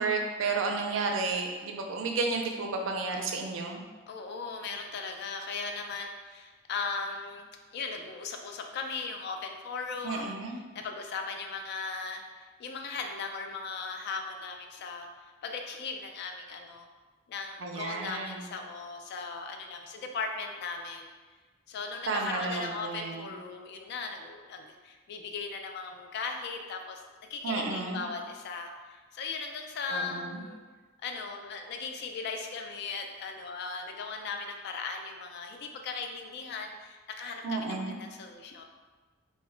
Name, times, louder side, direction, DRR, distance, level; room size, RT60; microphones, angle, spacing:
voice 1, 0.0-3.8 10.0-10.6 17.6-18.5 22.1-23.3 27.4-28.0 29.9-30.4 37.4-37.9, right 3 dB, 75° right, 2 dB, 0.4 m, -32 dB
voice 2, 4.1-10.4 10.7-15.1 15.4-16.9 17.3-21.1 21.7-30.6 31.0-38.6, left 4 dB, 55° left, 4 dB, 0.3 m, -38 dB
2.2 x 2.1 x 3.6 m, 1.3 s
head